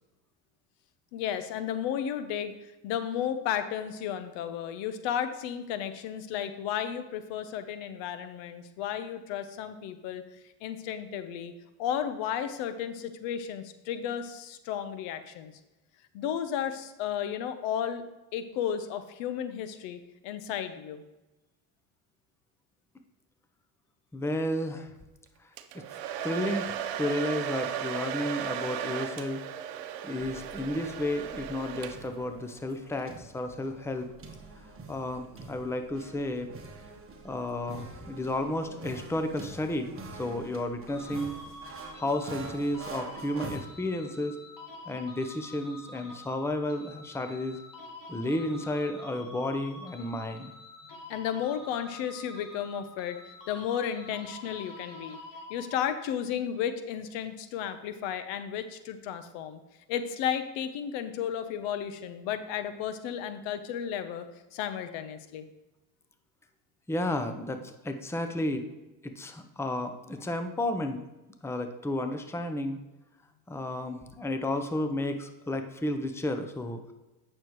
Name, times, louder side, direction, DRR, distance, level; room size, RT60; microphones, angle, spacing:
voice 1, 1.1-10.2 10.6-11.5 11.8-15.5 16.1-18.0 18.3-21.0 51.1-53.2 53.5-55.2 55.5-59.6 59.9-64.3 64.5-65.5, left 9 dB, 70° left, 10 dB, 0.9 m, -33 dB
voice 2, 24.1-24.9 25.7-25.8 26.2-26.7 27.0-29.4 30.0-34.1 34.9-36.5 37.2-39.9 40.2-41.3 41.9-44.4 44.9-47.6 48.1-50.5 66.9-68.6 69.0-71.0 71.4-72.8 73.5-76.8, left 1 dB, 5° left, 7 dB, 0.7 m, -32 dB
Domestic sounds home sounds, 25.6-32.3, right 9 dB, 80° right, 0.8 m, -36 dB
sound 1, 30.2-43.6, right 4 dB, 30° right, 1.3 m, -46 dB
sound 2, 40.9-56.1, left 2 dB, 45° left, 1.7 m, -47 dB
8.9 x 6.5 x 3.1 m, 1.0 s
supercardioid pair, 90°, 45 cm